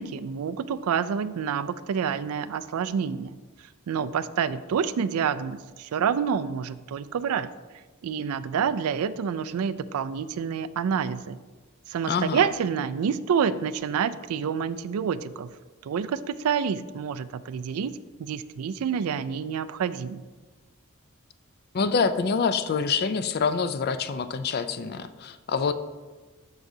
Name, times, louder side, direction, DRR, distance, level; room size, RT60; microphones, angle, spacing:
voice 1, 0.0-3.4 3.9-7.5 8.0-11.4 11.9-15.5 15.8-17.9 18.2-20.2, right 7 dB, 85° right, 15 dB, 0.3 m, -28 dB
voice 2, 12.1-12.4 21.7-25.7, left 5 dB, 45° left, 11 dB, 0.4 m, -26 dB
12.5 x 4.9 x 2.7 m, 1.3 s
head